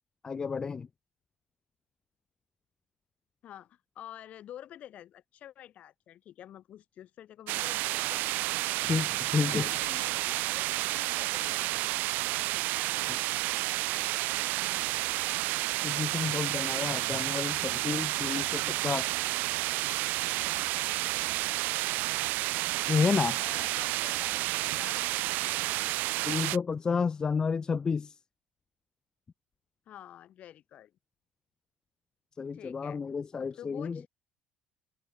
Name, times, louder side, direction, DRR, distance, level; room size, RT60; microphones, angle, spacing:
voice 1, 0.2-0.9 8.8-9.7 13.0-13.2 15.8-19.3 22.9-23.4 26.3-28.1 32.4-34.0, left 5 dB, 25° left, 2.6 m, -31 dB
voice 2, 3.4-8.2 9.3-11.7 23.0-25.1 29.9-30.9 32.5-33.0 33.4-34.0, left 11 dB, 50° left, 7.9 m, -49 dB
sound 1, 7.5-26.6, right 19 dB, 70° right, 0.6 m, -30 dB
cardioid pair, 140°, 3 cm